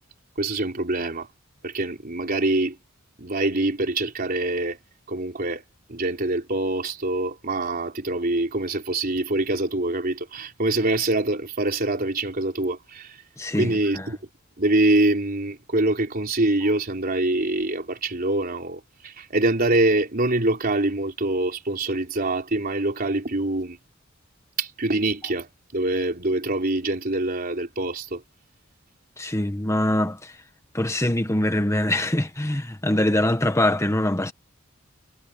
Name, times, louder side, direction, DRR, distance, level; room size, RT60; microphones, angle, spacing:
voice 1, 0.4-1.3 1.6-2.8 3.2-4.8 5.1-5.6 5.9-13.2 13.5-14.2 14.6-23.8 24.6-25.5 25.7-28.2, right 2 dB, 45° right, 3.9 m, -24 dB
voice 2, 13.4-14.1 29.2-30.4 30.7-34.3, left 1 dB, 15° left, 1.2 m, -23 dB
head